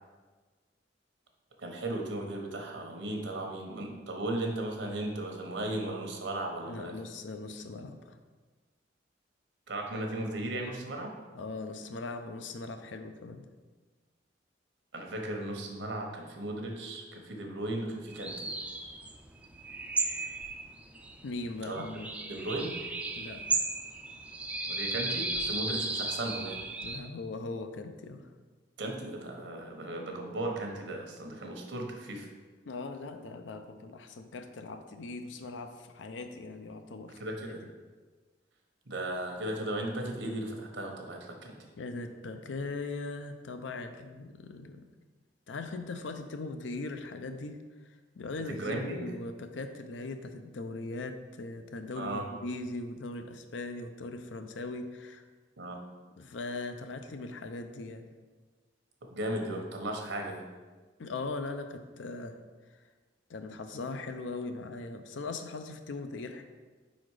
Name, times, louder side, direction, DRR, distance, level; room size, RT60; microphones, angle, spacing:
voice 1, 1.6-6.9 9.7-11.1 14.9-18.5 21.7-21.8 22.3-22.7 24.7-26.6 28.8-32.3 37.2-37.6 38.9-41.6 48.5-49.0 52.0-52.3 55.6-55.8 59.1-60.4, right 1 dB, 85° right, 2 dB, 1.0 m, -36 dB
voice 2, 6.6-8.2 11.3-13.5 21.2-22.1 23.2-23.6 26.8-28.3 32.6-37.2 37.5-37.6 41.8-44.9 45.5-47.6 48.1-55.2 56.2-58.1 61.0-62.4 63.3-66.4, left 3 dB, 85° left, 7 dB, 0.5 m, -39 dB
sound 1, 18.1-27.0, right 2 dB, 5° right, 0.3 m, -35 dB
4.9 x 4.2 x 4.8 m, 1.4 s
head